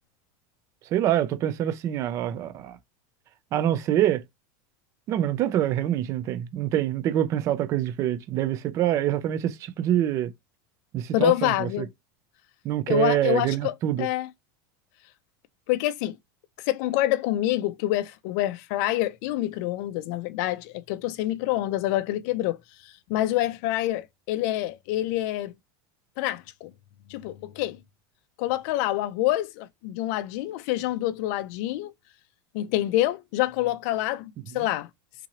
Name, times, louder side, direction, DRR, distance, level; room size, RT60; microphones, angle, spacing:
voice 1, 0.9-2.8 3.5-4.2 5.1-10.3 10.9-11.9 12.6-14.1 34.6-34.7, right 12 dB, 30° right, 0.4 m, -25 dB
voice 2, 11.1-11.9 12.9-14.3 15.7-16.2 16.7-25.5 26.2-26.7 27.1-27.8 28.4-31.9 32.5-34.9, left 15 dB, 50° left, 0.4 m, -27 dB
3.7 x 3.0 x 2.7 m
supercardioid pair, 160°, 11 cm